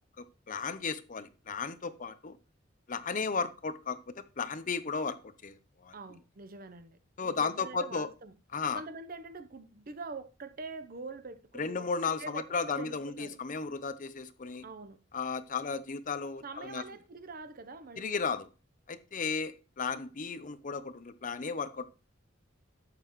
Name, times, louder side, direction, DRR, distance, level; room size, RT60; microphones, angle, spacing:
voice 1, 0.2-2.4 2.9-5.6 5.8-5.9 7.2-8.1 8.5-8.8 11.6-14.6 15.1-16.8 18.0-18.5 18.9-21.9, left 5 dB, 45° left, 0.7 m, -34 dB
voice 2, 5.9-8.3 8.7-13.4 14.6-15.0 16.4-18.2, right 3 dB, 50° right, 0.8 m, -45 dB
11.5 x 7.8 x 3.1 m
head